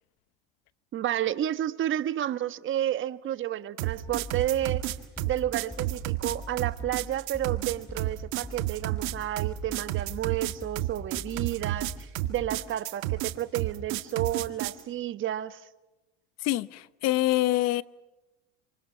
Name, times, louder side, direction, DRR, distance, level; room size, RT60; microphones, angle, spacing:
voice 1, 0.9-4.8 5.3-15.6, right 12 dB, 40° right, 1.3 m, -31 dB
sound 1, 3.8-14.8, right 17 dB, 65° right, 1.9 m, -31 dB
sound 2, 4.1-12.8, left 1 dB, 5° left, 4.2 m, -43 dB
voice 2, 16.4-17.8, left 16 dB, 55° left, 1.0 m, -25 dB
27.5 x 27.0 x 5.7 m
supercardioid pair, 110°, 32 cm